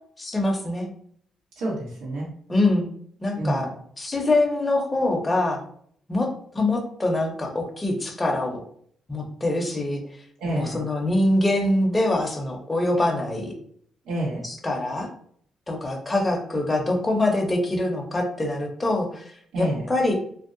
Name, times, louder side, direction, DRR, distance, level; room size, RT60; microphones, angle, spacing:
voice 1, 0.2-0.9 2.5-2.9 3.2-3.7 4.0-5.6 6.1-6.3 6.5-8.6 9.1-10.0 10.5-13.5 14.4-15.1 15.7-19.3 19.6-20.1, left 2 dB, 20° left, 1 dB, 0.6 m, -24 dB
voice 2, 1.6-2.3 3.4-3.7 10.4-10.8 14.1-14.4 19.5-19.8, right 1 dB, 90° right, -4 dB, 1.0 m, -28 dB
2.6 x 2.0 x 2.5 m, 0.63 s
cardioid pair, 90°, 0 cm